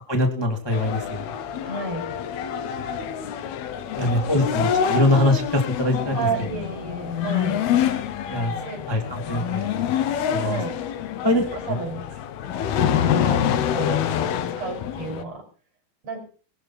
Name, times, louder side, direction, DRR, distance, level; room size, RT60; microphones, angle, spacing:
voice 1, 0.1-1.3 4.0-6.5 8.3-8.5 8.9-9.7 10.3-10.6 11.2-11.7, left 1 dB, 15° left, 2 dB, 0.9 m, -23 dB
sound 1, 0.7-15.2, left 9 dB, 70° left, 2.9 m, -26 dB
voice 2, 1.6-2.1 3.9-4.5 6.1-7.6 8.6-8.9 10.4-10.8 11.2-12.1 13.0-14.0 14.6-15.4 16.0-16.2, right 4 dB, 35° right, 4 dB, 6.9 m, -32 dB
21.0 x 13.5 x 4.4 m, 0.39 s
omnidirectional pair, 5.0 m